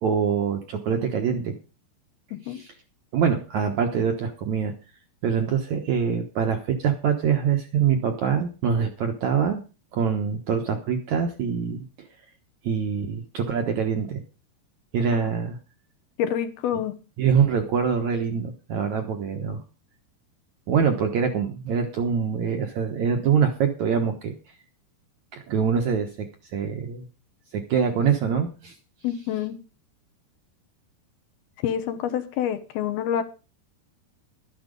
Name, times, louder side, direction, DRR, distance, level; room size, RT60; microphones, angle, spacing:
voice 1, 0.0-1.5 2.5-2.7 3.1-4.7 5.2-9.6 9.9-11.9 12.6-14.2 14.9-15.6 17.2-19.6 20.7-24.3 25.3-26.3 26.5-27.1 27.5-28.8, right 7 dB, 65° right, 5 dB, 2.0 m, -24 dB
voice 2, 2.3-2.6 15.1-15.3 16.2-17.0 29.0-29.6 31.6-33.2, left 9 dB, 70° left, 10 dB, 3.0 m, -27 dB
13.0 x 10.5 x 5.3 m, 0.33 s
omnidirectional pair, 4.7 m